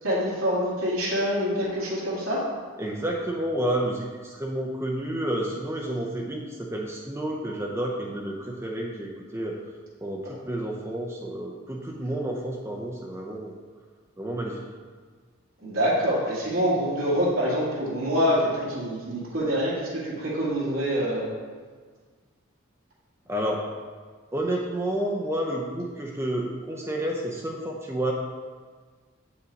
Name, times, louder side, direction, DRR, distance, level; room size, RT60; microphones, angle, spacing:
voice 1, 0.0-2.4 15.6-21.3, equal, 80° right, -7 dB, 2.0 m, -25 dB
voice 2, 2.8-9.6 10.0-13.5 14.2-14.6 23.3-23.6 24.3-28.1, right 1 dB, 15° right, 0 dB, 0.6 m, -30 dB
8.1 x 5.7 x 4.0 m, 1.5 s
head